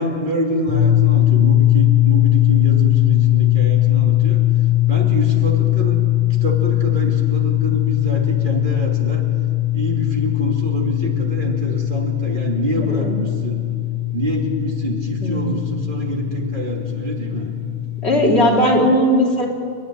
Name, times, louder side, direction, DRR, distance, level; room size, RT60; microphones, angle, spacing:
voice 1, 0.0-4.4 4.9-6.0 6.4-9.2 9.7-13.7 14.1-17.5, right 1 dB, 45° right, 0 dB, 3.0 m, -26 dB
sound 1, 0.7-18.5, left 15 dB, 15° left, 2.6 m, -19 dB
voice 2, 12.9-13.2 15.2-15.6 18.0-19.5, equal, 65° left, -1 dB, 3.4 m, -17 dB
30.0 x 11.0 x 9.9 m, 2.2 s
omnidirectional pair, 1.2 m